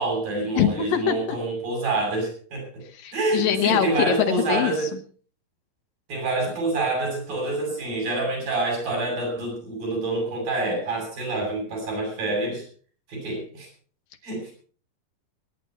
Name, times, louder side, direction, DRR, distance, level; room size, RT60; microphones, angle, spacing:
voice 1, 0.0-2.8 3.1-4.9 6.1-12.7 13.1-13.7 14.2-14.5, right 2 dB, 70° right, 0 dB, 9.3 m, -27 dB
voice 2, 0.6-1.4 3.0-4.2 4.5-4.7, left 9 dB, 70° left, 6 dB, 2.9 m, -23 dB
22.5 x 10.5 x 4.4 m, 0.42 s
omnidirectional pair, 4.2 m